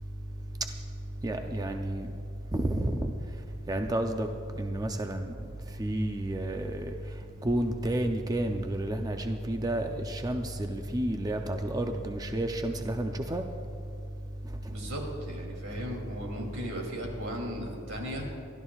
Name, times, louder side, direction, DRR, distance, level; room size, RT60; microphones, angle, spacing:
voice 1, 1.2-2.1 2.5-3.1 3.7-4.3 4.6-5.3 5.8-6.9 7.4-13.4, right 1 dB, 20° right, 5 dB, 0.5 m, -30 dB
voice 2, 14.7-18.3, equal, 90° right, 0 dB, 2.9 m, -36 dB
26.0 x 12.5 x 2.4 m, 2.5 s
head